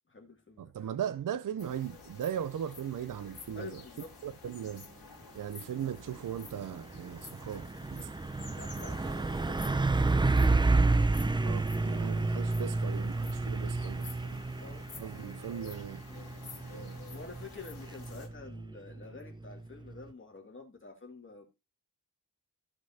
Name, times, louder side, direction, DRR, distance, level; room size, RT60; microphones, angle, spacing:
voice 1, 0.1-0.9 3.5-4.1 8.5-10.8 13.6-13.7 14.2-14.9 17.0-21.5, left 4 dB, 35° left, 2.5 m, -49 dB
voice 2, 0.6-3.8 4.2-4.9 5.3-8.1 11.4-14.4 15.0-16.0 16.7-17.0, right 9 dB, 65° right, 0.5 m, -38 dB
sound 1, 1.6-18.3, left 5 dB, 80° left, 2.5 m, -51 dB
Truck, 5.8-20.1, right 3 dB, 15° right, 0.4 m, -31 dB
15.0 x 5.2 x 2.8 m
wide cardioid pair, 120°, 35 cm